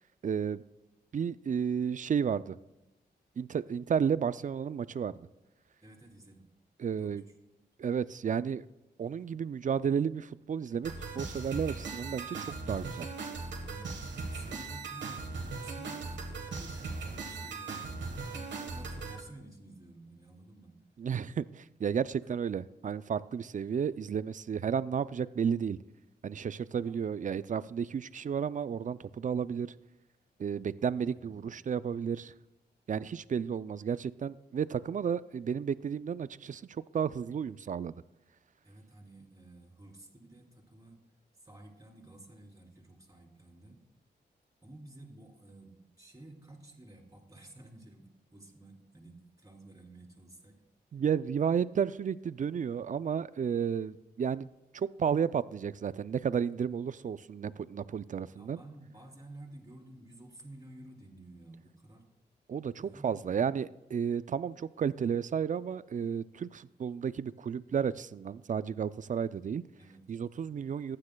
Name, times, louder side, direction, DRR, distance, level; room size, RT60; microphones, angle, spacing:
voice 1, 0.2-0.6 1.1-2.6 3.4-5.1 6.8-7.2 7.8-8.6 9.0-13.1 21.0-25.8 26.2-29.7 30.4-32.3 32.9-36.6 36.9-37.9 50.9-54.5 54.7-58.6 62.5-69.6 70.1-71.0, right 7 dB, 45° right, 17 dB, 0.4 m, -32 dB
voice 2, 5.8-6.5 6.9-7.1 13.5-20.8 22.2-22.3 26.8-27.2 31.1-31.6 38.6-41.0 41.4-43.8 44.6-50.5 58.2-62.0 62.8-63.3 69.8-70.2, right 1 dB, 20° right, -2 dB, 3.4 m, -52 dB
sound 1, 10.8-19.2, right 4 dB, 90° right, 1.3 m, -39 dB
15.0 x 9.7 x 2.3 m, 0.95 s
cardioid pair, 55°, 18 cm